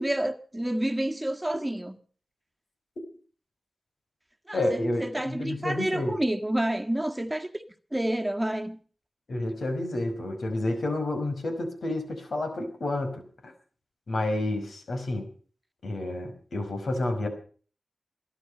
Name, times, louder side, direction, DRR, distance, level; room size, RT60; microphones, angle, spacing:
voice 1, 0.0-2.0 4.5-7.6 7.9-8.8, right 1 dB, 10° right, 1.6 m, -29 dB
voice 2, 4.5-6.2 9.3-13.5 14.1-15.3 15.8-17.3, left 1 dB, 80° left, 5.1 m, -30 dB
22.0 x 11.0 x 5.5 m
wide cardioid pair, 65°, 0 cm